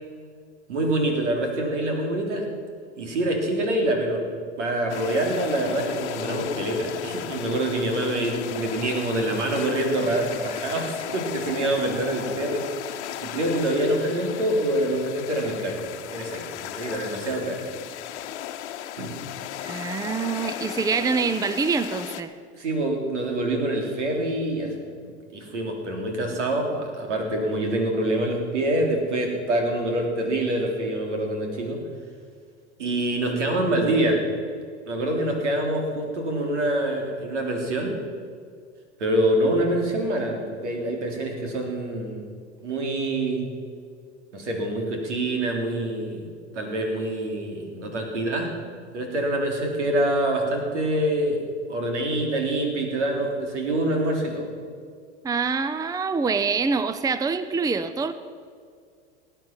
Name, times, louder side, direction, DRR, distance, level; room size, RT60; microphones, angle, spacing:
voice 1, 0.7-2.4 2.9-4.3 4.6-12.6 12.9-15.8 16.1-17.6 19.0-19.1 22.6-24.7 25.3-31.8 32.8-34.2 34.9-37.9 39.0-42.2 42.6-43.5 44.3-46.2 46.5-48.5 48.9-51.4 51.7-54.5, right 1 dB, 85° right, 2 dB, 3.2 m, -25 dB
sound 1, 4.9-22.2, left 11 dB, 75° left, 1.0 m, -35 dB
voice 2, 19.6-22.3 55.2-58.1, right 5 dB, 10° right, 12 dB, 0.6 m, -25 dB
19.0 x 9.1 x 5.9 m, 2.1 s
hypercardioid pair, 90°, 35 cm